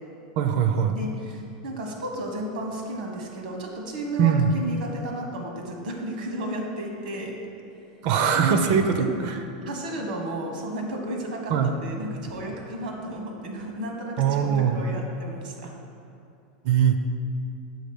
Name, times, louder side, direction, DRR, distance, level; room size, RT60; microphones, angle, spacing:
voice 1, 0.4-0.9 4.2-4.5 8.0-9.4 11.5-11.7 14.2-14.8 16.6-17.0, right 7 dB, 50° right, 7 dB, 0.4 m, -21 dB
voice 2, 0.9-7.4 8.3-9.1 9.6-15.7, right 1 dB, 85° right, 1 dB, 1.2 m, -33 dB
6.3 x 3.9 x 5.2 m, 2.6 s
supercardioid pair, 145°, 5 cm